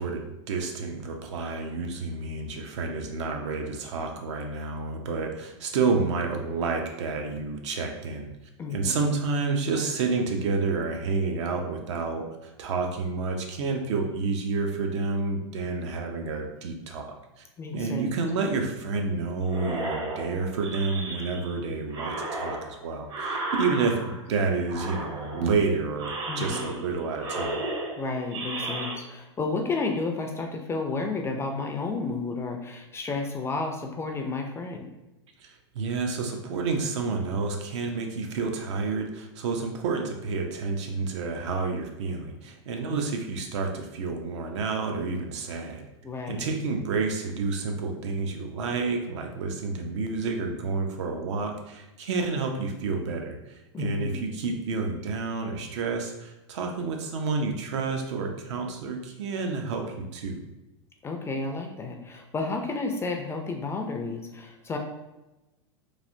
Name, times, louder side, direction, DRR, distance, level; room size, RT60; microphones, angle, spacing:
voice 1, 0.0-8.3 8.7-17.4 17.7-27.6 35.4-45.8 46.3-60.4, right 4 dB, 70° right, 3 dB, 0.6 m, -29 dB
voice 2, 8.6-9.1 17.6-18.1 26.3-26.7 28.0-34.9 42.8-43.0 46.0-46.5 53.7-54.2 61.0-64.8, left 3 dB, 15° left, 3 dB, 0.4 m, -32 dB
sound 1, 19.5-21.6 21.9-24.3 24.7-25.6 26.0-26.9 27.2-29.0, right 2 dB, 30° right, 0.6 m, -34 dB
3.2 x 2.4 x 2.6 m, 1.0 s
hypercardioid pair, 110°, 16 cm